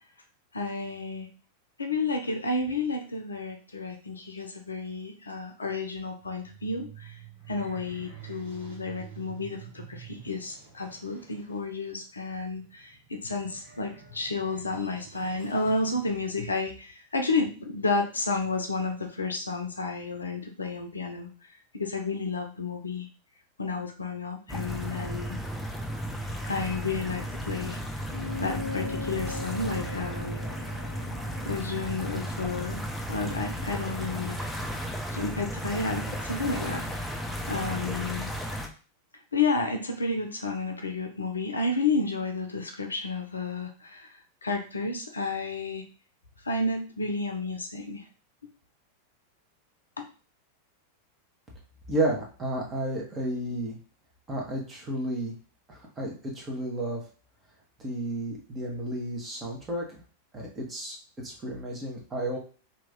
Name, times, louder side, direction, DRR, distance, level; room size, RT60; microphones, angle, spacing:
voice 1, 0.5-1.3 1.8-7.2 7.5-21.3 21.7-23.1 23.6-25.4 26.4-27.8 28.4-30.5 31.4-32.8 33.1-34.5 35.1-37.2 37.5-38.3 39.3-45.8 46.4-48.0 50.0-50.1, left 3 dB, 75° left, 4 dB, 0.6 m, -31 dB
sound 1, 6.2-16.7, right 8 dB, 70° right, 1.2 m, -49 dB
sound 2, 24.5-38.7, equal, 5° left, 0.6 m, -34 dB
sound 3, 28.1-32.9, left 4 dB, 90° right, 0.3 m, -39 dB
voice 2, 51.9-53.8 54.3-55.3 55.7-57.0 57.8-60.0 60.3-62.4, right 1 dB, 20° right, -2 dB, 1.3 m, -32 dB
3.0 x 2.7 x 3.6 m, 0.38 s
figure-of-eight pair, 90°, 0 cm